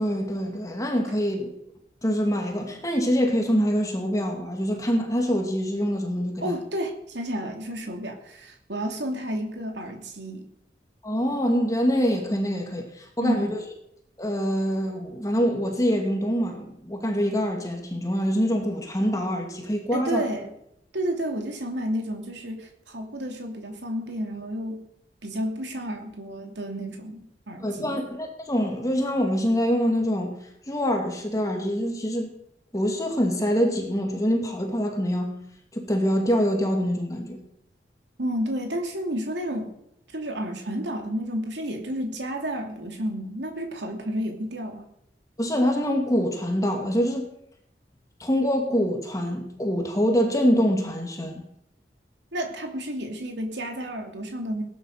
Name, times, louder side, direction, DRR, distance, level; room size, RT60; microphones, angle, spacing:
voice 1, 0.0-1.6 2.0-6.6 11.0-13.6 14.2-20.3 27.6-32.3 32.7-35.4 35.7-37.4 45.4-47.3 48.2-51.4, equal, 20° left, 2 dB, 2.3 m, -25 dB
voice 2, 6.4-10.5 13.2-13.6 19.9-20.5 20.9-24.8 25.2-28.0 38.2-39.7 40.1-44.8 52.3-54.6, equal, 85° right, 3 dB, 2.7 m, -31 dB
18.5 x 11.0 x 6.6 m, 0.77 s
head